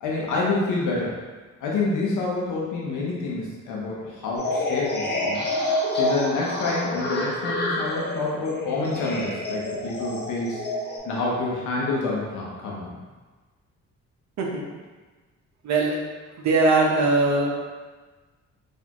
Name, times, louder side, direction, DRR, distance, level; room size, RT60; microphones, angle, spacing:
voice 1, 0.0-1.2 1.6-5.5 5.9-10.6 11.0-13.0, left 3 dB, 85° left, -4 dB, 0.8 m, -27 dB
sound 1, 4.4-11.0, left 1 dB, 35° left, 0.8 m, -28 dB
voice 2, 15.6-16.0 16.4-17.5, right 3 dB, 65° right, -1 dB, 0.8 m, -20 dB
4.2 x 2.6 x 2.9 m, 1.3 s
cardioid pair, 90°, 30 cm